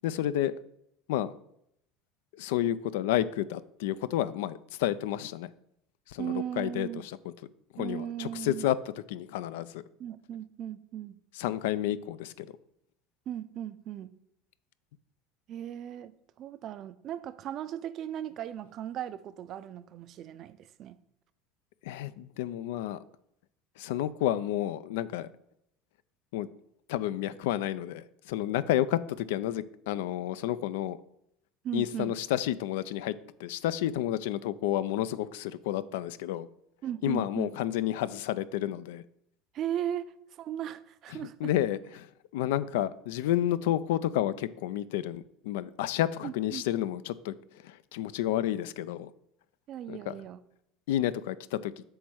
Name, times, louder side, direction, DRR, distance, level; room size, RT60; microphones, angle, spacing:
voice 1, 0.0-0.5 1.1-1.3 2.3-5.5 6.1-7.1 7.7-8.8 9.1-9.8 11.4-12.5 21.8-23.0 23.8-25.3 26.3-26.5 26.9-31.0 31.7-33.1 33.4-36.5 37.0-39.0 41.4-42.1 42.3-47.3 47.6-49.1 49.9-50.1 50.9-51.7, left 12 dB, 85° left, 0.3 m, -30 dB
voice 2, 6.2-7.0 7.8-8.7 10.0-11.2 13.3-14.2 15.5-21.0 31.6-32.2 36.8-37.6 39.5-41.5 46.2-46.6 49.7-50.4, right 10 dB, 45° right, 0.4 m, -37 dB
7.8 x 3.2 x 6.2 m
supercardioid pair, 115°, 0 cm